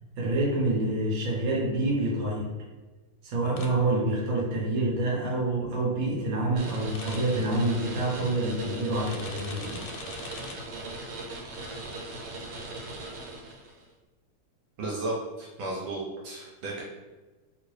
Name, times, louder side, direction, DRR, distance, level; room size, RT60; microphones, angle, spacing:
voice 1, 0.2-2.5 3.2-9.8, right 2 dB, 50° right, -3 dB, 1.0 m, -27 dB
sound 1, 3.6-3.7 6.9-7.2 9.1-10.5, left 5 dB, 90° left, 1.5 m, -42 dB
sound 2, 6.6-13.8, right 2 dB, 90° right, 1.7 m, -39 dB
voice 2, 14.8-16.8, right 2 dB, 75° right, -4 dB, 1.3 m, -34 dB
3.0 x 2.9 x 3.1 m, 1.2 s
omnidirectional pair, 2.3 m